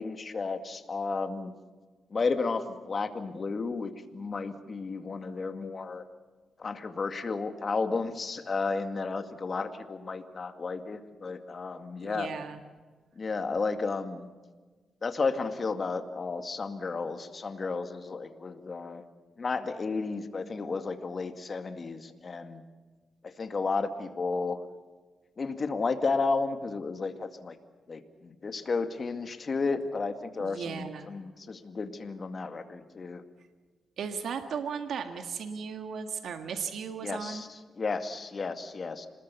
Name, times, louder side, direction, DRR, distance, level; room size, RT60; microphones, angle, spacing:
voice 1, 0.0-1.5 2.1-6.0 6.6-12.3 13.2-14.3 15.0-19.0 19.4-22.6 23.2-24.6 25.4-27.6 27.9-33.2 37.0-39.1, left 4 dB, 45° left, 7 dB, 2.1 m, -33 dB
voice 2, 12.0-12.6 30.4-31.1 34.0-37.4, right 6 dB, 80° right, 6 dB, 1.7 m, -36 dB
27.0 x 20.5 x 7.0 m, 1.3 s
cardioid pair, 80°, 0 cm